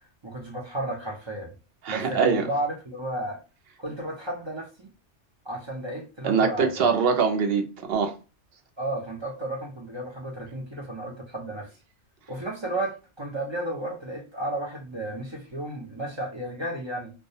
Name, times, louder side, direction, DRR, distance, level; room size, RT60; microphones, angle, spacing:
voice 1, 0.2-1.5 1.9-3.4 3.8-4.9 5.4-6.9 8.8-11.7 12.3-17.1, right 1 dB, 40° right, 0.4 m, -33 dB
voice 2, 1.8-2.5 6.2-8.1, right 5 dB, 60° right, 0.8 m, -23 dB
2.3 x 2.1 x 2.6 m
omnidirectional pair, 1.2 m